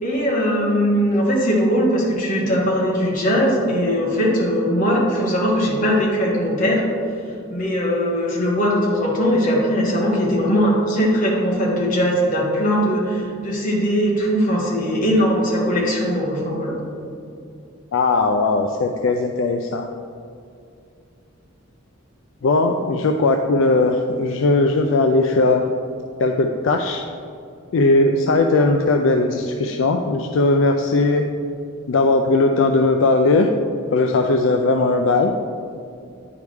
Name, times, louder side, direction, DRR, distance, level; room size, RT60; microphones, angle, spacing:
voice 1, 0.0-6.9 7.5-16.7, equal, 40° left, -3 dB, 1.5 m, -20 dB
voice 2, 17.9-19.9 22.4-25.6 26.2-27.0 27.7-31.3 31.9-33.5 33.9-35.3, left 3 dB, 65° left, 4 dB, 0.4 m, -18 dB
9.4 x 4.8 x 3.5 m, 2.5 s
head